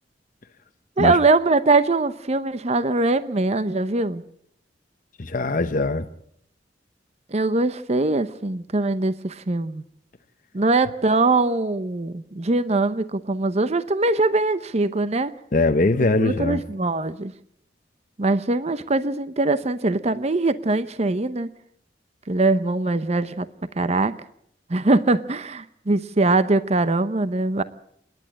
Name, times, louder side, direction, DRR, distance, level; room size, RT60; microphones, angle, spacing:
voice 1, 1.0-4.2 7.3-9.8 10.5-15.3 16.2-17.3 18.2-21.5 22.3-23.5 23.8-24.1 24.7-27.6, right 2 dB, 35° right, 0.8 m, -22 dB
voice 2, 5.2-6.0 15.5-16.6, left 2 dB, 45° left, 0.8 m, -21 dB
28.0 x 11.0 x 8.9 m
head